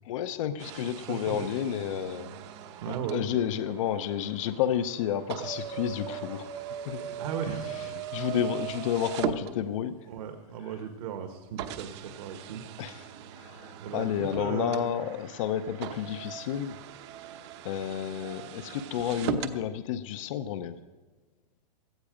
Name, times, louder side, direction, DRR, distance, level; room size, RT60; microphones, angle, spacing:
voice 1, 0.1-2.3 3.1-6.5 6.9-7.0 8.1-10.0 12.8-13.0 13.4-16.8 17.6-20.7, left 10 dB, 50° left, 11 dB, 0.8 m, -31 dB
sound 1, 0.6-10.1 10.8-10.9 11.6-19.6, right 10 dB, 40° right, 1.0 m, -39 dB
voice 2, 0.8-1.5 2.8-3.4 7.2-7.8 8.3-8.4 10.1-12.6 13.8-14.9, right 8 dB, 60° right, 6 dB, 1.6 m, -36 dB
17.0 x 13.5 x 5.1 m, 1.2 s
hypercardioid pair, 155°, 21 cm